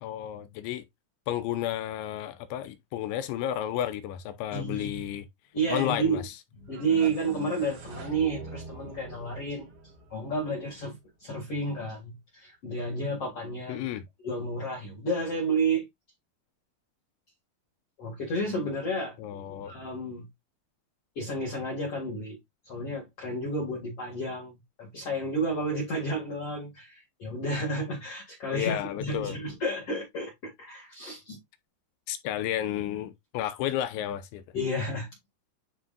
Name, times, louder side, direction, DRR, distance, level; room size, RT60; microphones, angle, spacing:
voice 1, 0.0-0.8 1.3-5.3 5.7-6.3 13.7-14.0 19.2-19.8 28.5-29.4 32.1-34.4, left 12 dB, 80° left, 2.9 m, -32 dB
voice 2, 4.5-5.0 5.5-6.2 6.5-9.7 10.1-13.9 14.2-15.9 18.0-19.2 19.6-20.3 21.2-22.4 22.7-24.5 24.8-30.3 30.6-31.4 34.5-35.1, right 2 dB, 40° left, 2.4 m, -31 dB
sound 1, 6.6-11.5, right 4 dB, 80° right, 1.3 m, -45 dB
9.6 x 4.8 x 2.5 m
omnidirectional pair, 5.5 m